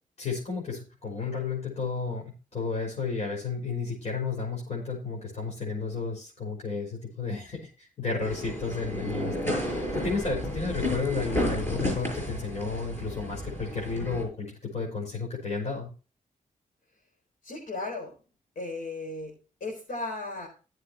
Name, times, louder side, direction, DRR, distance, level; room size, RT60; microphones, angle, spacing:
voice 1, 0.2-15.9, left 4 dB, 50° left, -3 dB, 5.6 m, -32 dB
sound 1, 8.2-14.2, equal, 15° left, 6.3 m, -32 dB
voice 2, 17.4-18.1 18.5-19.3 19.6-20.5, left 2 dB, 80° left, -2 dB, 4.6 m, -35 dB
17.0 x 7.7 x 3.0 m, 0.34 s
wide cardioid pair, 115°, 14 cm